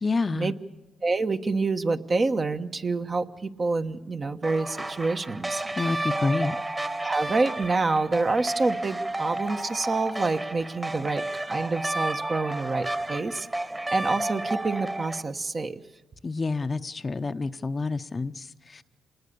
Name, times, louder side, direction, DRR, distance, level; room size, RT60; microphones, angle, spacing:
voice 1, 0.0-0.6 5.8-6.6 16.2-18.8, left 3 dB, 35° left, 10 dB, 0.8 m, -28 dB
voice 2, 1.0-5.6 7.0-13.5 13.9-15.8, right 3 dB, 40° right, 6 dB, 1.3 m, -27 dB
sound 1, 4.4-15.2, right 2 dB, 20° right, 1.7 m, -32 dB
27.0 x 20.0 x 6.9 m, 1.1 s
cardioid pair, 70°, 0 cm